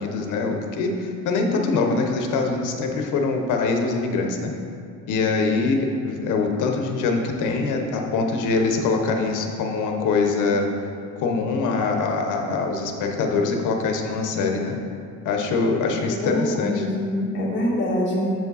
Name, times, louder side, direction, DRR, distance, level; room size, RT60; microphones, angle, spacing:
voice 1, 0.0-4.5 5.1-10.7 11.2-14.7 15.2-16.9, left 4 dB, 80° left, 3 dB, 0.9 m, -23 dB
voice 2, 16.1-18.3, equal, 40° left, -3 dB, 1.4 m, -25 dB
7.3 x 5.0 x 4.0 m, 2.3 s
cardioid pair, 150°, 30 cm